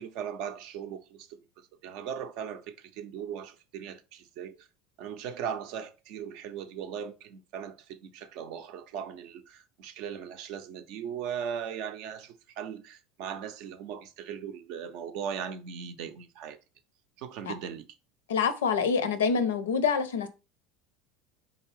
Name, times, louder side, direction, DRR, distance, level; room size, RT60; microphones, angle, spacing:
voice 1, 0.0-4.7 5.0-16.6 17.2-17.9, right 8 dB, 55° right, 0.5 m, -38 dB
voice 2, 18.3-20.3, left 6 dB, 70° left, 0.5 m, -26 dB
3.7 x 2.8 x 3.1 m
figure-of-eight pair, 75°, 0 cm